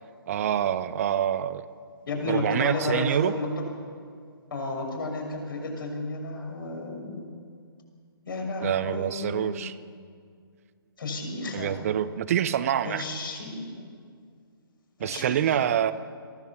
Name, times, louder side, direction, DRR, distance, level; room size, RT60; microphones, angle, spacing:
voice 1, 0.3-1.6 2.3-3.3 8.6-9.8 11.5-13.0 15.0-15.9, right 10 dB, 35° right, 13 dB, 0.7 m, -26 dB
voice 2, 2.1-3.7 4.5-7.3 8.3-9.6 11.0-11.8 12.8-13.9 15.0-15.7, left 2 dB, 60° left, 1 dB, 6.1 m, -32 dB
23.0 x 16.0 x 7.2 m, 2.1 s
figure-of-eight pair, 135°, 13 cm